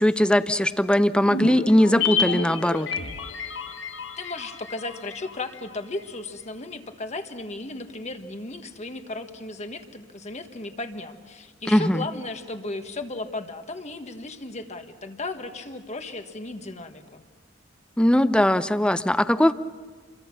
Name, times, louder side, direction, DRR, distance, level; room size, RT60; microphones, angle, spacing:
voice 1, 0.0-2.9 11.7-12.0 18.0-19.5, left 1 dB, 5° left, 13 dB, 0.6 m, -20 dB
sound 1, 1.3-5.8 6.0-6.1, left 5 dB, 85° left, 1.4 m, -30 dB
voice 2, 4.2-17.2, left 2 dB, 40° left, 7 dB, 1.6 m, -35 dB
28.5 x 23.0 x 6.1 m, 1.5 s
head